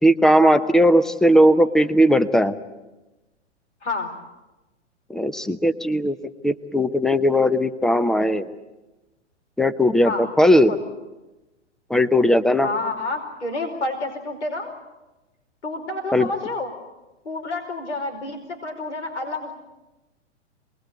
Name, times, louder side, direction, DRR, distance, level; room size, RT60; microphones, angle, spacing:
voice 1, 0.0-2.5 5.1-6.2 6.4-8.5 9.6-10.7 11.9-12.7 16.1-16.3, equal, ahead, 13 dB, 0.8 m, -18 dB
voice 2, 3.8-4.1 10.0-10.2 10.7-10.8 12.6-14.7 15.6-16.7 17.2-19.5, left 2 dB, 70° left, 4 dB, 5.0 m, -29 dB
27.0 x 21.0 x 8.5 m, 1.1 s
figure-of-eight pair, 110°, 35 cm